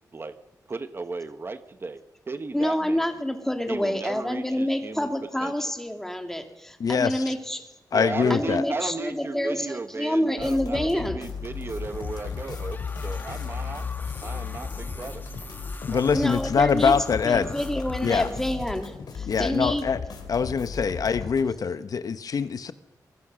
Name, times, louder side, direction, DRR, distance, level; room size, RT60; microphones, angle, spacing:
voice 1, 0.7-2.0 2.3-3.0 3.7-5.1 5.4-5.5 7.9-13.9 14.2-15.2 15.9-16.3, right 3 dB, 35° right, 11 dB, 1.2 m, -35 dB
voice 2, 2.5-7.6 8.3-11.2 16.1-17.0 17.2-19.8, left 1 dB, 5° left, 5 dB, 2.7 m, -27 dB
voice 3, 6.8-7.3 7.9-8.6 15.9-17.5 18.0-18.3 19.3-20.0 20.3-22.7, left 6 dB, 65° left, 12 dB, 1.1 m, -24 dB
sound 1, 10.4-21.4, left 5 dB, 90° left, 4.2 m, -35 dB
sound 2, 11.3-18.9, left 3 dB, 30° left, 1.8 m, -45 dB
24.5 x 22.0 x 6.4 m, 0.99 s
wide cardioid pair, 120°, 7 cm